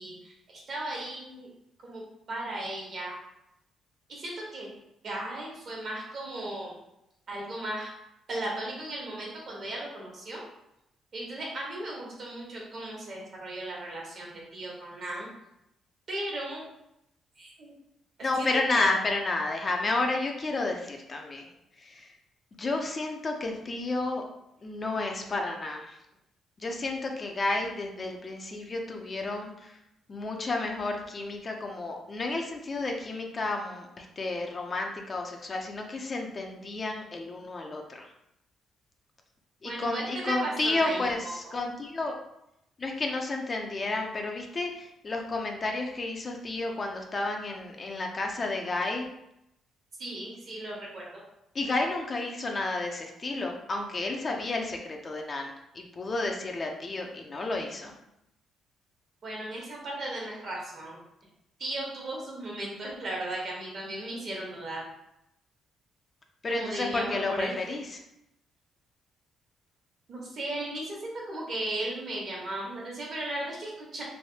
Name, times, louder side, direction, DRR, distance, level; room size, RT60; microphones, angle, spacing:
voice 1, 0.0-1.5 1.8-2.0 2.3-3.1 4.1-4.7 5.0-6.7 7.3-7.9 8.3-10.4 11.1-15.3 16.1-16.6 17.4-17.7 18.4-18.9 39.6-41.5 50.0-51.2 59.2-61.0 61.6-64.8 66.5-67.6 70.1-74.0, right 1 dB, 55° right, -3 dB, 1.3 m, -36 dB
voice 2, 18.2-21.5 21.8-22.1 22.6-24.2 24.6-26.0 26.6-29.8 30.1-38.1 39.6-42.2 42.8-49.1 51.5-57.9 66.4-68.0, left 2 dB, 35° left, 2 dB, 0.5 m, -31 dB
3.3 x 2.6 x 2.8 m, 0.83 s
cardioid pair, 90°, 0 cm